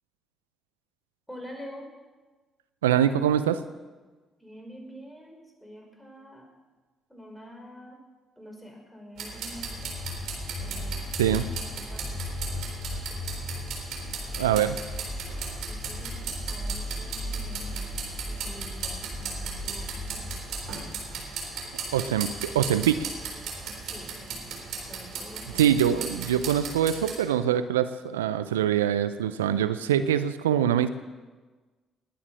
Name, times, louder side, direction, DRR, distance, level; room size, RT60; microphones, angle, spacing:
voice 1, 1.3-1.9 4.4-6.5 7.1-8.0 8.4-9.9 10.6-11.2 11.5-12.7 13.1-13.5 15.7-17.9 18.3-20.3 23.6-24.6 24.9-25.6, equal, 5° left, 2 dB, 5.4 m, -46 dB
voice 2, 2.8-3.6 11.2-11.4 14.4-14.8 21.9-23.1 25.6-30.9, right 10 dB, 85° right, 13 dB, 0.5 m, -24 dB
sound 1, 9.2-27.1, right 5 dB, 65° right, 3.7 m, -37 dB
sound 2, 9.5-26.6, left 1 dB, 25° left, 4.3 m, -38 dB
20.0 x 10.0 x 6.3 m, 1.3 s
hypercardioid pair, 50°, 0 cm